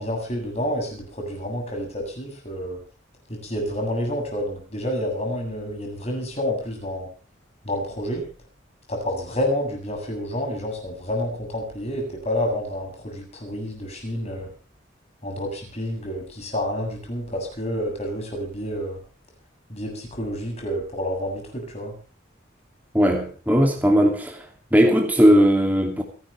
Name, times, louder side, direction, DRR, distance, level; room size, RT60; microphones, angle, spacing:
voice 1, 0.0-2.8 3.3-7.1 7.6-8.2 8.9-14.5 15.2-19.0 19.7-21.9, equal, 35° left, 2 dB, 7.8 m, -29 dB
voice 2, 22.9-24.5 24.7-26.0, equal, 10° right, 2 dB, 2.8 m, -18 dB
28.5 x 12.5 x 3.4 m, 0.36 s
head